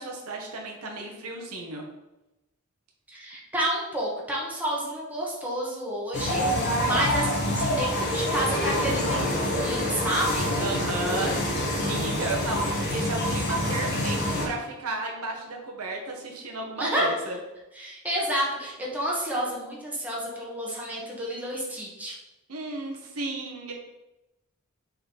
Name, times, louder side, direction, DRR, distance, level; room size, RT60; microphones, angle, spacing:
voice 1, 0.0-1.8 10.6-11.4 11.7-17.3 22.5-23.7, right 2 dB, 75° right, 0 dB, 1.3 m, -33 dB
voice 2, 3.1-10.5 16.8-17.1 17.7-22.2, right 1 dB, 5° right, -5 dB, 1.6 m, -30 dB
sound 1, 6.1-14.5, left 1 dB, 50° left, 1.5 m, -26 dB
6.7 x 4.3 x 4.1 m, 0.97 s
head